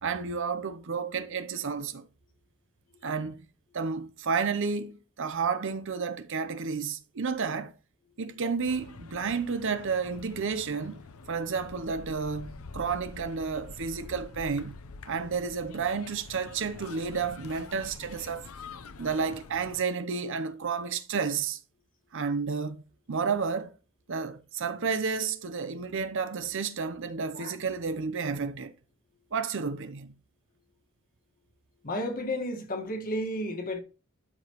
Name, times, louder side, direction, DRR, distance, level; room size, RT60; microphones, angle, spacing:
voice 1, 0.0-2.1 3.0-3.4 3.7-7.7 8.2-14.7 15.1-18.4 19.0-21.6 22.1-22.8 23.1-23.7 24.1-28.7 29.3-30.1, right 5 dB, 60° right, 0.7 m, -31 dB
sound 1, 8.7-19.8, left 4 dB, 70° left, 0.7 m, -46 dB
voice 2, 31.8-33.8, left 1 dB, 40° left, 1.6 m, -32 dB
12.0 x 4.9 x 3.0 m
head